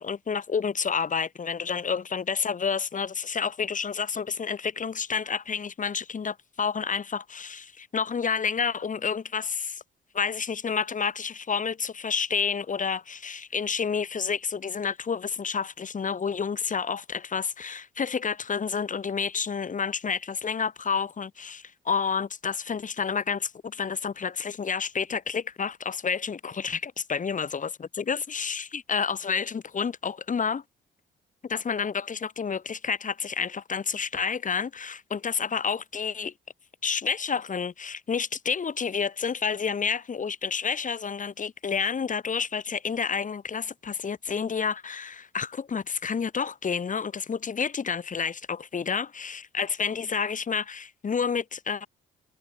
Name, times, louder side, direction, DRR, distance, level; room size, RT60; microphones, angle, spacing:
voice 1, 0.0-9.8 10.1-27.7 28.0-30.6 31.4-36.3 36.8-51.9, left 6 dB, 40° left, 3.5 m, -29 dB
cardioid pair, 90°, 20 cm